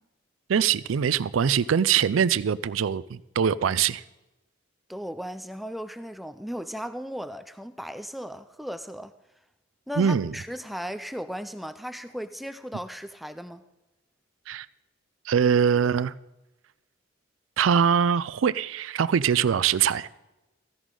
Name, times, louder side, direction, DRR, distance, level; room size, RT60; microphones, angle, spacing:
voice 1, 0.5-4.0 10.0-10.3 14.5-14.7 15.3-16.1 17.6-20.1, right 7 dB, 85° right, 18 dB, 0.4 m, -23 dB
voice 2, 4.9-9.1 9.9-13.6, equal, ahead, 10 dB, 0.4 m, -36 dB
15.0 x 11.0 x 3.8 m, 0.99 s
head